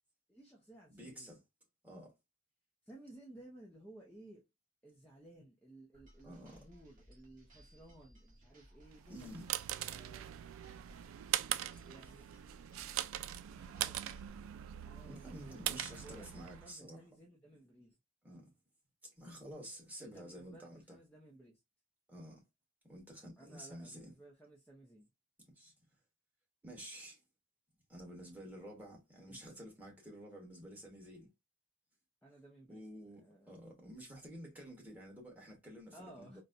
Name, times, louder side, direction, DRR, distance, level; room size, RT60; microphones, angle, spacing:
voice 1, 0.3-1.3 2.9-4.5 4.8-10.3 11.9-12.3 13.5-14.1 14.8-18.0 20.0-21.6 23.4-25.1 29.3-29.4 32.2-32.8 33.2-33.5 35.9-36.4, right 1 dB, 5° left, 0.6 m, -57 dB
voice 2, 0.9-1.4 1.8-2.1 6.2-6.6 9.1-9.5 15.0-17.0 18.2-18.5 19.0-21.0 22.1-22.4 22.9-24.2 25.5-25.7 26.6-27.2 27.9-31.3 32.7-36.4, equal, 10° right, 1.2 m, -50 dB
sound 1, 5.9-14.3, equal, 40° right, 1.3 m, -62 dB
sound 2, 9.0-16.7, right 12 dB, 90° right, 0.3 m, -41 dB
4.0 x 2.2 x 2.5 m
head